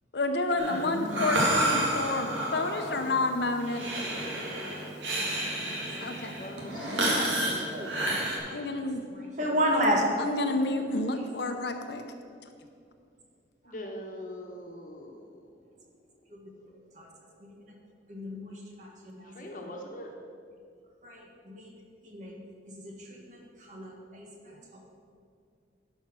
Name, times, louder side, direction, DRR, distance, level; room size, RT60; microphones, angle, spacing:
voice 1, 0.1-3.8 6.0-6.3 8.4-9.0 10.2-12.0, left 2 dB, 65° left, 6 dB, 0.7 m, -29 dB
Breathing, 0.6-8.4, right 1 dB, 80° right, 2.2 m, -30 dB
voice 2, 0.7-1.3 7.1-7.3 7.7-8.2 9.1-10.0 16.3-16.4 16.9-17.1 17.4-17.5 18.1-19.3 19.6-19.7 21.0-21.7 22.0-22.4 22.7-24.9, equal, 40° right, 0 dB, 1.4 m, -33 dB
voice 3, 6.4-6.9 13.6-15.3 19.3-20.1, left 1 dB, 45° left, 1 dB, 1.2 m, -42 dB
11.0 x 5.6 x 6.1 m, 2.3 s
head